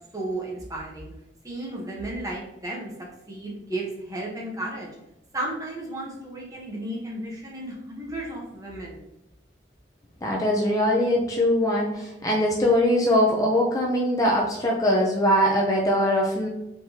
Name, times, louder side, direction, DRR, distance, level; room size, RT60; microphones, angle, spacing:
voice 1, 0.1-1.1 1.4-2.9 3.3-4.9 5.3-9.0, right 1 dB, 20° right, -3 dB, 1.0 m, -33 dB
voice 2, 10.2-16.5, equal, 20° left, -2 dB, 0.5 m, -22 dB
4.4 x 3.5 x 2.8 m, 0.91 s
head